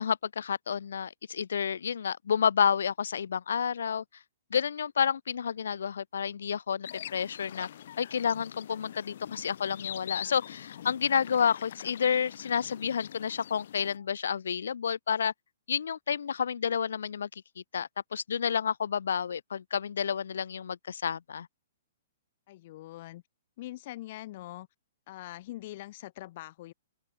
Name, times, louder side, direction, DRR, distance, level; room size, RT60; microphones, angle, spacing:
voice 1, 0.0-4.0 4.5-7.7 8.0-15.3 15.7-17.3 17.7-21.5, left 7 dB, 85° left, 1.0 m, -30 dB
sound 1, 6.8-14.0, left 10 dB, 60° left, 7.8 m, -44 dB
voice 2, 22.5-23.2 23.6-24.7 25.1-26.7, left 16 dB, 45° left, 4.5 m, -43 dB
open air
hypercardioid pair, 160°, 0 cm